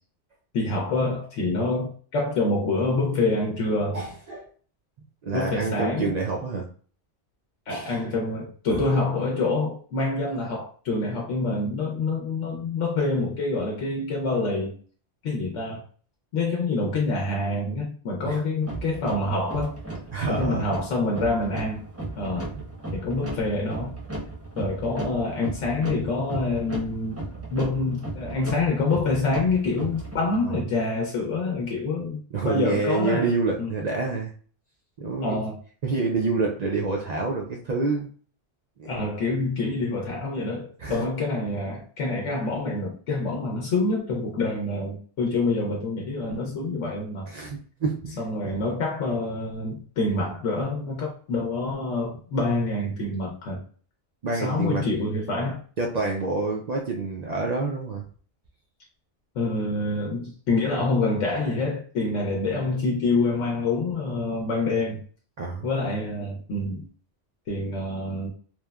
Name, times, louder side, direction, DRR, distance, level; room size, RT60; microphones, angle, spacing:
voice 1, 0.5-4.0 5.3-6.1 7.7-14.7 15.2-15.8 16.3-19.7 20.3-21.8 22.2-22.5 22.9-23.9 24.6-27.2 27.5-33.3 33.6-33.7 35.2-35.6 38.8-47.3 48.2-53.6 54.4-55.6 59.3-65.0 65.6-66.9 67.5-68.3, left 3 dB, 90° left, -1 dB, 1.0 m, -26 dB
voice 2, 3.9-4.5 5.2-6.7 7.7-8.1 8.7-8.8 18.3-18.4 20.1-20.7 22.5-22.6 30.5-30.6 32.3-34.3 35.0-35.4 35.8-38.1 38.8-38.9 40.8-41.0 47.3-48.2 48.4-48.5 54.2-54.8 55.8-58.0 65.4-65.7, right 3 dB, 65° right, 0 dB, 0.4 m, -27 dB
sound 1, 18.6-30.5, right 2 dB, 15° right, 0.6 m, -36 dB
3.0 x 2.1 x 2.2 m, 0.43 s
omnidirectional pair, 1.2 m